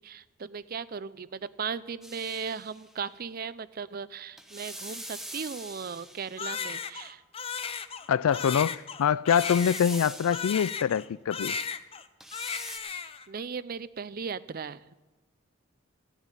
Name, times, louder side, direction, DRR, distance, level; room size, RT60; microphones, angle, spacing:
voice 1, 0.0-7.2 12.8-14.9, right 6 dB, 45° right, 0.4 m, -37 dB
sound 1, 2.0-2.9 4.4-6.6 9.3-10.8 12.2-12.8, right 1 dB, ahead, 0.8 m, -43 dB
Crying sobbing, 6.4-11.1 11.3-12.1 12.3-13.3, left 6 dB, 25° left, 0.5 m, -35 dB
voice 2, 8.1-11.6, left 8 dB, 85° left, 0.4 m, -25 dB
15.5 x 7.2 x 9.8 m
head